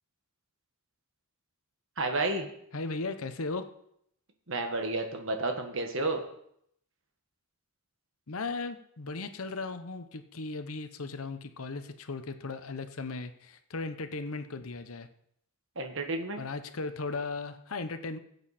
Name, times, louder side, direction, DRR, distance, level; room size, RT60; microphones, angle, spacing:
voice 1, 2.0-2.5 4.5-6.2 15.7-16.5, right 2 dB, 60° right, 4 dB, 1.6 m, -31 dB
voice 2, 2.7-3.7 8.3-15.1 16.4-18.2, left 3 dB, 70° left, 9 dB, 0.9 m, -37 dB
15.0 x 8.0 x 4.3 m, 0.72 s
head